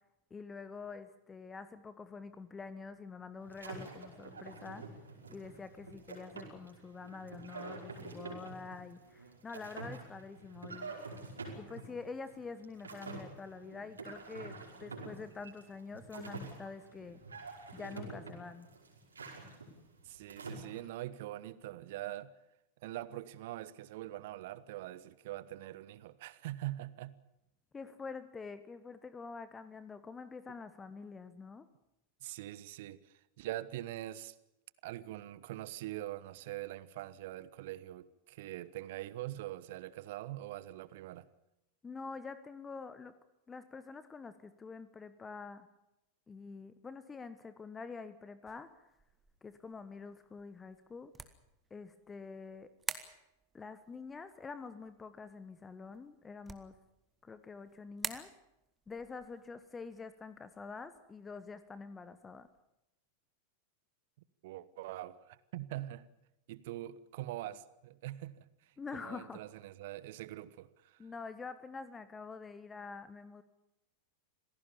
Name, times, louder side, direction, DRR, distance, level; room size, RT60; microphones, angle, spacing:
voice 1, 0.3-4.8 5.3-10.9 11.6-17.2 17.7-18.7 27.7-31.7 41.8-43.1 43.5-45.7 46.3-48.9 49.4-51.1 51.7-52.7 53.5-56.8 57.2-58.3 58.9-62.5 68.8-69.4 71.0-73.4, left 4 dB, 15° left, 1.1 m, -46 dB
sound 1, 3.4-20.8, right 3 dB, 75° right, 5.1 m, -47 dB
voice 2, 20.0-22.3 22.8-27.2 32.2-34.3 34.8-41.3 64.4-66.1 66.5-68.5 68.9-71.0, right 15 dB, 50° right, 1.1 m, -43 dB
sound 2, 48.5-62.6, right 4 dB, 15° right, 1.8 m, -50 dB
26.5 x 17.5 x 7.1 m
figure-of-eight pair, 90°, 0 cm